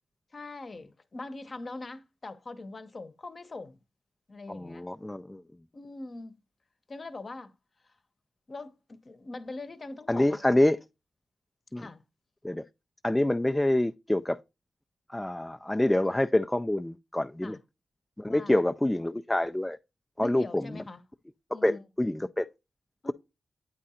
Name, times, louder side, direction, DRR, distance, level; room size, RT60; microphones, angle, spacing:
voice 1, 0.3-3.8 4.3-4.9 5.7-6.3 6.9-7.6 7.8-7.9 8.5-8.8 9.0-10.4 11.8-12.0 17.4-17.6 18.3-18.6 20.2-21.0 21.5-21.8 23.0-23.1, left 2 dB, 40° left, 0.8 m, -42 dB
voice 2, 4.5-5.4 10.1-10.8 11.7-11.9 12.4-12.6 13.0-14.4 15.1-17.6 18.2-19.8 20.2-20.8 21.5-22.5, left 1 dB, 10° left, 0.3 m, -26 dB
8.8 x 3.7 x 4.2 m
cardioid pair, 85°, 0 cm